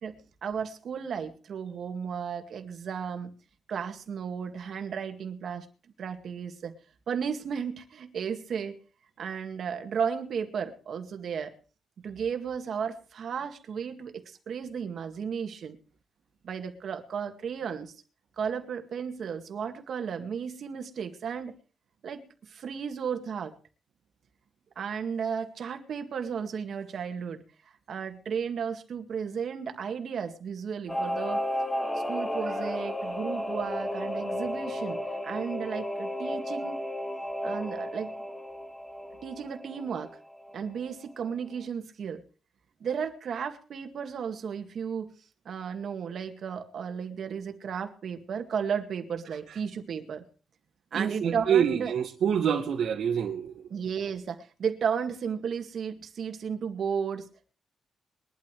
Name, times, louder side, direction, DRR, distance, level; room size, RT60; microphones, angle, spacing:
voice 1, 0.0-3.3 3.7-5.7 6.0-6.7 7.1-8.8 9.2-11.5 12.0-15.8 16.4-17.9 18.4-21.5 22.0-23.5 24.8-27.4 27.9-31.4 32.0-35.0 35.2-36.8 37.4-38.1 39.2-40.1 40.5-42.2 42.8-45.1 45.5-50.2 50.9-51.9 53.7-57.3, right 7 dB, 55° right, 2.1 m, -34 dB
Singing / Musical instrument, 30.9-40.9 41.2-41.3, left 1 dB, 10° left, 1.2 m, -33 dB
voice 2, 50.9-53.5, right 8 dB, 75° right, 2.1 m, -26 dB
22.0 x 12.0 x 3.4 m
wide cardioid pair, 150°, 0 cm